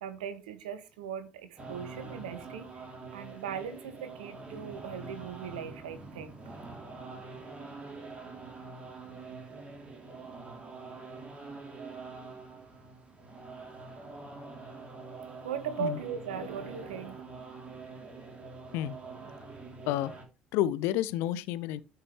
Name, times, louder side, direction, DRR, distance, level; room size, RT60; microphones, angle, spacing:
voice 1, 0.0-2.8 3.1-6.5 15.4-17.2, right 7 dB, 70° right, 1.3 m, -39 dB
sound 1, 1.6-20.2, right 3 dB, 25° right, 3.2 m, -45 dB
voice 2, 20.5-21.8, left 13 dB, 60° left, 0.7 m, -30 dB
13.5 x 5.7 x 3.3 m
figure-of-eight pair, 55°, 5 cm